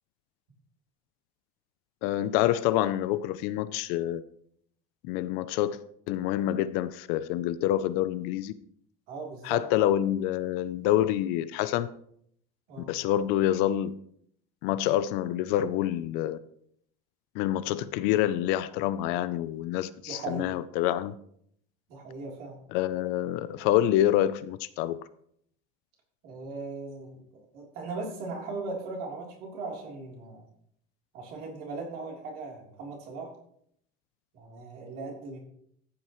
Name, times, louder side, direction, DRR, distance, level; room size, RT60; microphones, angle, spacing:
voice 1, 2.0-4.2 5.0-5.8 6.1-8.5 9.4-11.9 12.9-13.9 14.6-16.4 17.3-21.1 22.7-25.0, left 12 dB, 55° left, 0.5 m, -27 dB
voice 2, 9.1-9.6 12.7-12.9 20.1-20.5 21.9-22.6 26.2-30.5 31.1-33.3 34.3-35.4, right 3 dB, 50° right, 3.4 m, -38 dB
14.0 x 8.7 x 3.1 m
cardioid pair, 175°, 20 cm